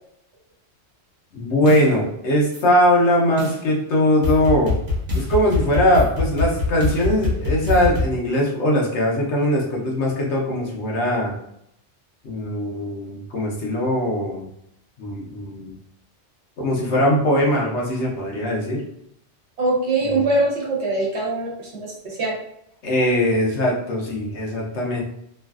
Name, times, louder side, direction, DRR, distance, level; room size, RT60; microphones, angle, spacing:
voice 1, 1.3-4.8 5.1-11.3 12.2-14.4 15.0-15.7 16.6-18.8 20.1-20.2 22.8-25.0, left 1 dB, 70° left, -2 dB, 1.1 m, -20 dB
sound 1, 1.7-1.8 2.5-2.6 3.4-3.6 4.2-8.1, left 3 dB, 45° right, 0.9 m, -24 dB
voice 2, 19.6-22.3, right 2 dB, 65° right, -4 dB, 1.2 m, -22 dB
3.1 x 2.4 x 2.3 m, 0.75 s
omnidirectional pair, 1.2 m